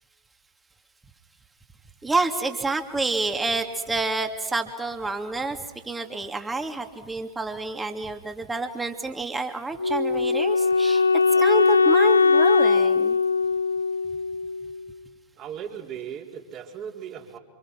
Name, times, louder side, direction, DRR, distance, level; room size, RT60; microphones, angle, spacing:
voice 1, 2.0-5.6 5.9-11.1 11.4-13.2, right 3 dB, 10° right, 5 dB, 2.8 m, -28 dB
Wind instrument woodwind instrument, 9.8-14.8, left 4 dB, 75° left, 0.9 m, -20 dB
voice 2, 15.4-17.4, right 8 dB, 35° right, 1 dB, 4.3 m, -37 dB
28.0 x 28.0 x 6.1 m, 1.3 s
figure-of-eight pair, 90°, 0 cm